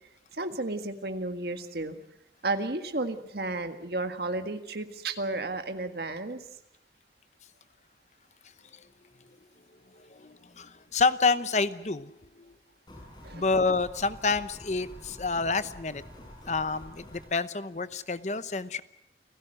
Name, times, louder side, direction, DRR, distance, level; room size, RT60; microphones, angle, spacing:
voice 1, 0.3-2.0 2.4-6.4 13.2-13.4, right 2 dB, 65° right, 8 dB, 1.8 m, -33 dB
voice 2, 10.1-12.2 13.3-16.0 16.5-18.8, left 4 dB, 40° left, 14 dB, 0.9 m, -28 dB
sound 1, 12.9-17.3, left 1 dB, 25° left, 6.1 m, -47 dB
28.5 x 16.0 x 7.8 m, 0.85 s
head